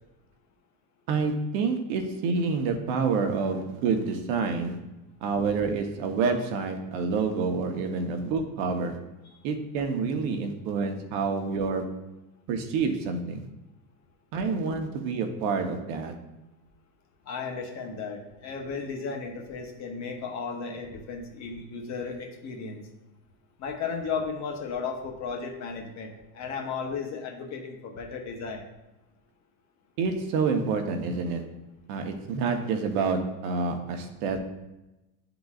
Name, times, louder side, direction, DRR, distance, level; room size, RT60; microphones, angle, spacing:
voice 1, 1.1-4.8 5.2-9.0 9.4-12.0 12.5-13.4 14.3-16.2 30.0-31.4 31.9-34.5, right 4 dB, 60° right, 6 dB, 1.0 m, -28 dB
voice 2, 17.3-22.8 23.6-28.6, left 5 dB, 35° left, 2 dB, 0.9 m, -35 dB
11.0 x 3.9 x 2.4 m, 0.98 s
supercardioid pair, 140°, 49 cm